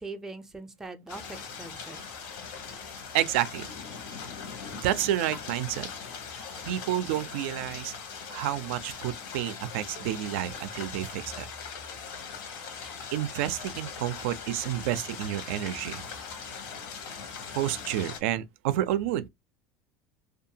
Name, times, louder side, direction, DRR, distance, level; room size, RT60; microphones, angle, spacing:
voice 1, 0.0-2.1, right 3 dB, 5° right, 0.4 m, -42 dB
sound 1, 1.1-18.2, left 6 dB, 75° left, 0.8 m, -40 dB
voice 2, 3.1-3.7 4.8-5.9 6.6-7.9 8.3-11.5 13.1-16.0 17.5-19.3, right 12 dB, 85° right, 0.3 m, -30 dB
2.6 x 2.3 x 2.7 m
cardioid pair, 145°, 6 cm